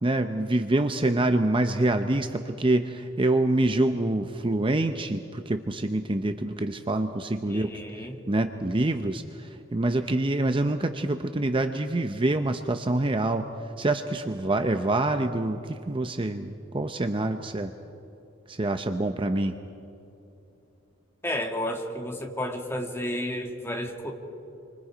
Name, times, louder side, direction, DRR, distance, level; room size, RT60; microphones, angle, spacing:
voice 1, 0.0-7.7 8.3-13.5 13.8-17.7 18.5-19.5, right 2 dB, 25° right, 7 dB, 0.7 m, -26 dB
voice 2, 7.5-8.2 21.2-24.1, left 1 dB, 15° left, 2 dB, 2.1 m, -32 dB
28.5 x 25.0 x 5.1 m, 2.8 s
head